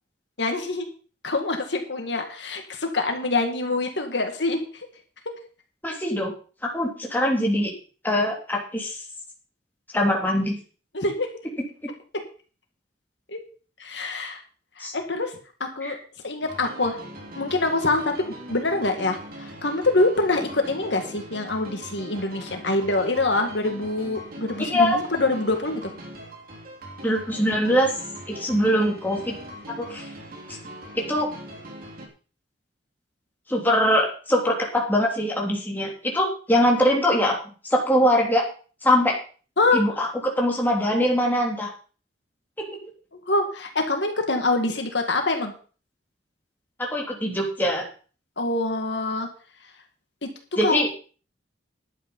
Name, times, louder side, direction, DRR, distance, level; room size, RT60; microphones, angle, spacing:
voice 1, 0.4-0.9 1.2-4.9 10.9-11.3 13.3-13.4 13.8-14.4 14.8-16.0 16.2-17.0 17.4-25.9 39.6-39.8 43.3-45.5 48.4-49.3 50.2-50.3 50.6-50.9, left 2 dB, 75° left, 4 dB, 2.1 m, -25 dB
voice 2, 5.8-6.3 6.6-7.7 8.0-9.0 9.9-10.6 14.8-14.9 15.8-15.9 24.6-25.0 27.0-27.9 28.3-29.3 29.8-30.1 30.9-31.3 33.5-37.4 37.7-38.4 38.8-39.1 39.7-41.7 42.6-42.7 46.8-47.9 50.6-50.9, equal, 10° left, -1 dB, 3.2 m, -22 dB
sound 1, 16.4-32.1, right 1 dB, 55° right, 3.4 m, -41 dB
11.5 x 8.6 x 5.6 m, 0.39 s
head